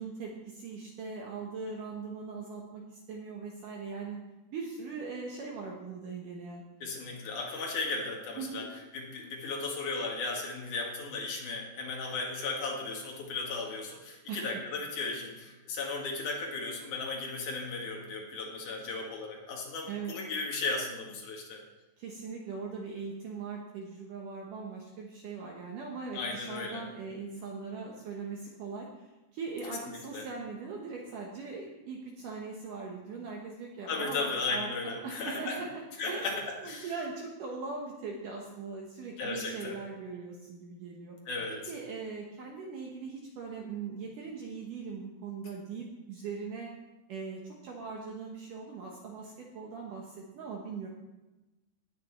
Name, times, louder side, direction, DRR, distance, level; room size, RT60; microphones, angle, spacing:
voice 1, 0.0-4.2 4.5-6.6 8.4-8.7 14.3-14.4 19.9-20.2 22.0-41.2 41.7-46.7 47.1-50.9, right 4 dB, 65° right, -1 dB, 2.2 m, -40 dB
voice 2, 6.8-8.7 8.9-21.6 26.1-26.9 29.7-30.3 33.9-35.6 36.0-36.9 39.2-39.8 41.3-41.6, left 3 dB, 55° left, -1 dB, 3.0 m, -36 dB
18.0 x 6.9 x 4.2 m, 1.1 s
omnidirectional pair, 4.9 m